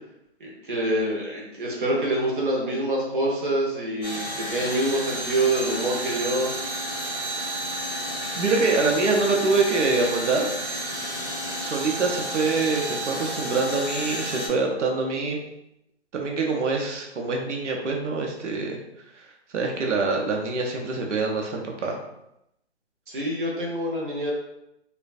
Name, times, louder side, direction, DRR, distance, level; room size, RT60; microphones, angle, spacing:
voice 1, 0.4-6.5 23.1-24.3, right 1 dB, 45° right, -3 dB, 0.6 m, -26 dB
sound 1, 4.0-14.5, equal, 35° left, 0.6 m, -31 dB
voice 2, 8.4-10.5 11.6-15.4 16.1-18.8 19.2-19.3 19.5-22.0, right 3 dB, 85° right, 1 dB, 0.6 m, -25 dB
2.4 x 2.1 x 2.4 m, 0.83 s
hypercardioid pair, 175°, 35 cm